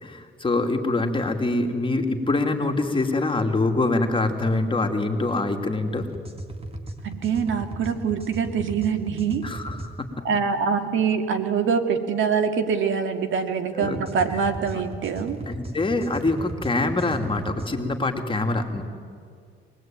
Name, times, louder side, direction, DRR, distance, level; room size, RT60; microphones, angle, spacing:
voice 1, 0.0-6.1 9.4-10.2 13.7-14.0 14.7-14.8 15.5-18.8, left 2 dB, 25° left, 4 dB, 2.7 m, -25 dB
sound 1, 6.0-9.9 13.8-17.7, right 1 dB, 30° right, 2.6 m, -37 dB
voice 2, 7.0-9.4 10.2-15.4, right 6 dB, 75° right, 7 dB, 2.1 m, -24 dB
24.5 x 20.0 x 9.1 m, 2.2 s
cardioid pair, 90°, 20 cm